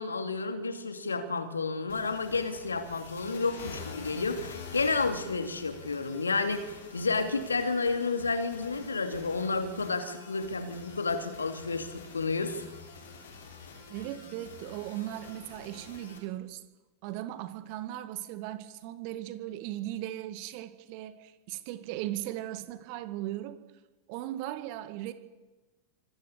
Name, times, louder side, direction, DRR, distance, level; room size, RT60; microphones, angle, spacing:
voice 1, 0.0-12.7, left 4 dB, 75° left, 8 dB, 2.5 m, -31 dB
sound 1, 1.9-16.2, left 4 dB, 60° left, 5.5 m, -47 dB
voice 2, 13.9-16.6 17.0-23.6 24.1-25.1, right 14 dB, 45° right, 11 dB, 2.0 m, -38 dB
25.0 x 17.5 x 8.4 m, 1.1 s
figure-of-eight pair, 90°, 0 cm